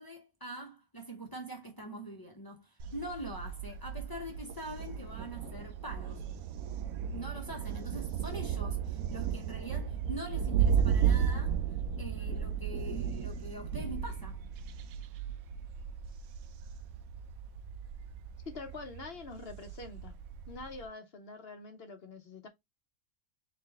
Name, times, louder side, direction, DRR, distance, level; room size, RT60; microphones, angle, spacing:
voice 1, 0.0-6.2 7.1-11.6 12.0-14.4, right 1 dB, 20° left, 0.9 m, -43 dB
Thunder, 2.8-20.9, right 8 dB, 85° right, 1.0 m, -34 dB
voice 2, 18.5-20.1 20.5-22.5, left 3 dB, 50° left, 1.0 m, -45 dB
3.9 x 3.5 x 3.4 m
omnidirectional pair, 1.5 m